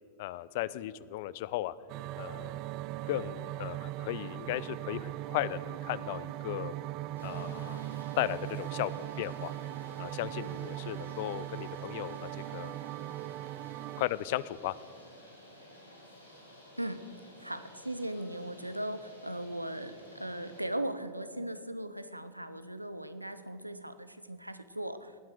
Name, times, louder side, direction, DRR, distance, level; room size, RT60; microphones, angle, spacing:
voice 1, 0.2-1.7 2.2-2.6 3.1-6.7 7.2-7.8 8.2-8.9 9.2-9.5 10.0-12.8 14.0-14.7, left 15 dB, 50° left, 19 dB, 0.5 m, -36 dB
sound 1, 1.9-14.1, right 15 dB, 40° right, 0.3 m, -39 dB
sound 2, 7.2-20.7, left 1 dB, 85° left, 3.2 m, -53 dB
voice 2, 17.4-25.1, right 1 dB, 85° right, 12 dB, 0.8 m, -38 dB
18.5 x 9.1 x 6.7 m, 2.2 s
figure-of-eight pair, 90°, 0 cm